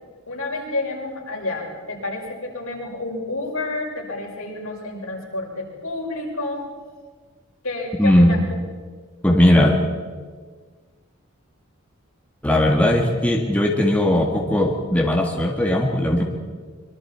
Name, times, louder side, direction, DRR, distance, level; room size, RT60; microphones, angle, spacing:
voice 1, 0.3-6.6 7.6-8.6, left 2 dB, 75° left, -2 dB, 6.0 m, -29 dB
voice 2, 8.0-8.3 9.2-9.8 12.4-16.2, left 1 dB, 5° left, 0 dB, 1.9 m, -18 dB
25.0 x 23.5 x 4.6 m, 1.5 s
head